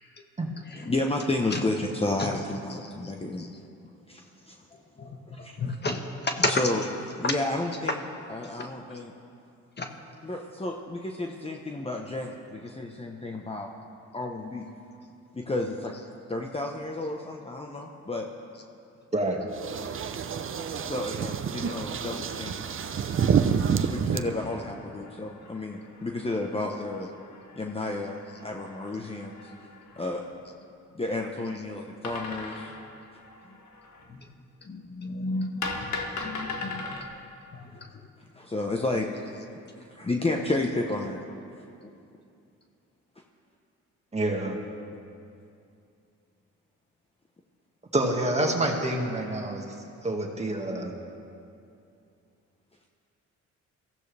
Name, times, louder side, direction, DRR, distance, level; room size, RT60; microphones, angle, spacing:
voice 1, 0.9-3.5 4.1-4.8 5.3-5.6 6.4-6.8 7.2-9.1 10.2-13.7 14.1-14.6 15.3-15.9 16.3-18.3 20.8-22.7 23.9-27.1 27.5-29.4 30.0-30.2 30.9-32.7 38.3-39.1 39.8-41.2, left 2 dB, 20° left, 1 dB, 1.1 m, -31 dB
voice 2, 5.6-6.0 6.2-6.5 9.8-9.9 34.7-35.7 36.2-36.8, left 2 dB, 35° left, 4 dB, 1.4 m, -30 dB
sound 1, 19.5-24.2, right 7 dB, 45° right, 0.8 m, -28 dB
sound 2, 22.3-30.3 32.0-34.1 35.6-37.0, left 3 dB, 70° left, 1.9 m, -41 dB
voice 3, 44.1-44.6 47.9-49.6 50.0-50.9, right 1 dB, 20° right, 1 dB, 2.1 m, -27 dB
22.5 x 15.0 x 3.5 m, 2.5 s
cardioid pair, 90°, 30 cm